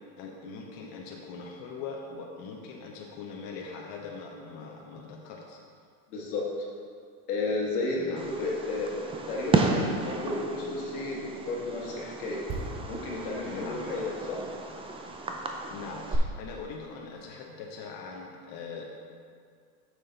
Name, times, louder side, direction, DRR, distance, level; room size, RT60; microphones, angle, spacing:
voice 1, 0.2-5.6 7.9-8.3 13.4-13.8 15.7-18.9, left 4 dB, 55° left, -1 dB, 1.0 m, -41 dB
voice 2, 6.1-6.4 7.3-12.4 12.9-14.4, left 3 dB, 90° left, -3 dB, 1.8 m, -32 dB
Fireworks, 8.2-16.2, right 3 dB, 15° right, 0.5 m, -33 dB
sound 1, 12.5-16.1 16.4-16.6, right 2 dB, 35° right, 1.4 m, -43 dB
6.9 x 6.2 x 3.9 m, 2.2 s
supercardioid pair, 110°, 45 cm